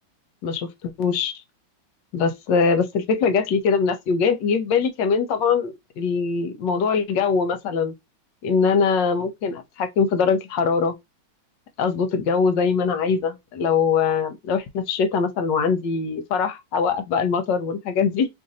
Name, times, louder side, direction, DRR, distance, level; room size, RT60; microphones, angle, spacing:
voice 1, 0.4-1.3 2.1-7.9 8.4-10.9 11.8-18.3, left 5 dB, 70° left, 1.3 m, -22 dB
3.2 x 2.6 x 3.9 m
omnidirectional pair, 2.1 m